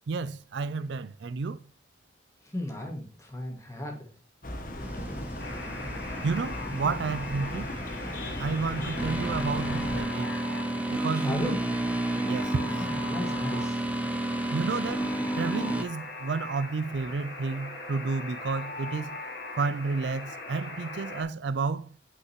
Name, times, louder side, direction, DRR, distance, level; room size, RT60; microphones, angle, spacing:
voice 1, 0.1-1.6 6.2-7.7 8.4-10.3 10.9-11.6 12.2-12.7 14.5-15.1 15.4-19.1 19.6-21.9, right 4 dB, 75° right, 0.4 m, -31 dB
voice 2, 2.5-4.1 11.2-11.9 12.8-13.8, left 1 dB, 15° left, 1.9 m, -35 dB
sound 1, 4.4-10.0, left 1 dB, 50° left, 1.1 m, -36 dB
sound 2, 4.8-15.8, right 1 dB, 10° right, 0.6 m, -32 dB
Alarm, 5.4-21.2, left 2 dB, 70° left, 1.9 m, -40 dB
8.4 x 5.5 x 3.0 m
head